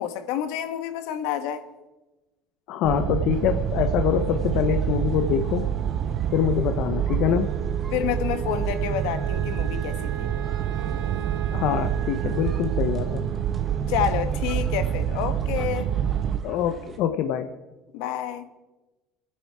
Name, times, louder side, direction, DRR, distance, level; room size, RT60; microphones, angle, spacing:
voice 1, 0.0-1.6 7.9-10.3 13.9-15.9 17.9-18.5, left 10 dB, 80° left, 1.4 m, -29 dB
voice 2, 2.7-5.6 6.3-7.5 11.5-13.2 16.4-17.5, left 9 dB, 55° left, 0.9 m, -25 dB
sound 1, 2.8-16.4, right 9 dB, 40° right, 0.7 m, -27 dB
sound 2, 3.3-17.0, right 2 dB, 15° right, 1.5 m, -44 dB
Wind instrument woodwind instrument, 6.6-15.1, right 9 dB, 65° right, 1.7 m, -39 dB
28.5 x 9.9 x 4.8 m
cardioid pair, 175°, 0 cm